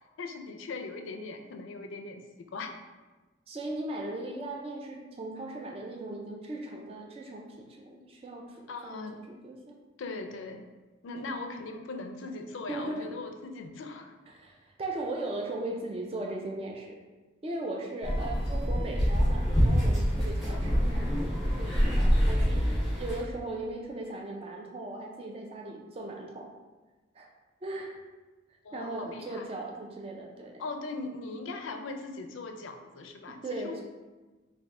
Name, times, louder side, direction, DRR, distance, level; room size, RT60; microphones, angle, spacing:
voice 1, 0.0-2.7 8.7-9.2 10.0-10.6 11.0-14.1 18.2-18.5 28.6-29.5 30.6-33.8, left 3 dB, 90° left, 5 dB, 0.4 m, -40 dB
voice 2, 3.5-9.8 11.1-11.2 12.7-13.1 14.3-17.0 17.4-26.5 27.1-27.3 27.6-28.0 28.7-30.6 33.3-33.8, right 2 dB, 30° right, 1 dB, 0.3 m, -38 dB
sound 1, 18.0-23.2, equal, ahead, 1.1 m, -26 dB
3.3 x 2.6 x 3.6 m, 1.2 s
head